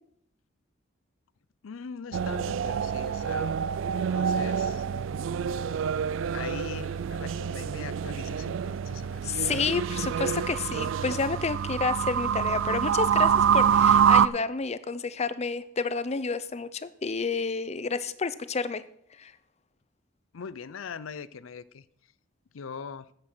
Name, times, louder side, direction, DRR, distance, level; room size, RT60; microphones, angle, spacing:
voice 1, 1.6-3.6 4.1-4.9 6.3-9.4 20.3-21.8 22.5-23.1, left 6 dB, 85° left, 18 dB, 0.5 m, -41 dB
sound 1, 2.1-14.3, right 7 dB, 70° right, 0.4 m, -26 dB
voice 2, 9.2-18.8 19.2-19.3, left 4 dB, 35° left, 15 dB, 0.6 m, -30 dB
9.6 x 8.7 x 6.1 m, 0.73 s
head